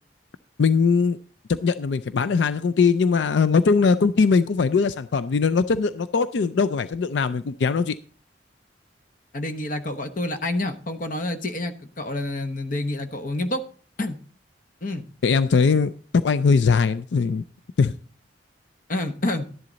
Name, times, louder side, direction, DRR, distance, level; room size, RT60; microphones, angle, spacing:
voice 1, 0.6-1.2 1.5-8.0 15.2-17.4 17.8-17.9, left 5 dB, 85° left, 12 dB, 0.4 m, -20 dB
voice 2, 9.3-13.6 14.0-14.2 14.8-15.0 18.9-19.5, left 1 dB, 50° left, 9 dB, 1.1 m, -28 dB
12.5 x 10.5 x 4.0 m, 0.41 s
head